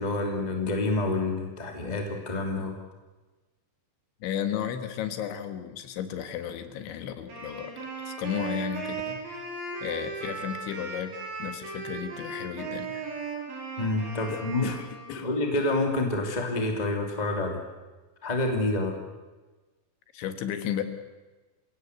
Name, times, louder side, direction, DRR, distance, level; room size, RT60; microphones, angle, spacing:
voice 1, 0.0-2.8 13.8-14.7 15.2-17.6 18.2-18.9, left 2 dB, 15° left, 2 dB, 1.4 m, -28 dB
voice 2, 4.2-7.7 8.0-9.2 9.8-11.1 11.4-13.0 14.3-15.3 20.1-20.8, left 9 dB, 70° left, 8 dB, 3.6 m, -34 dB
Wind instrument woodwind instrument, 7.3-15.4, right 4 dB, 60° right, 7.7 m, -37 dB
28.0 x 17.0 x 8.2 m, 1.2 s
omnidirectional pair, 6.0 m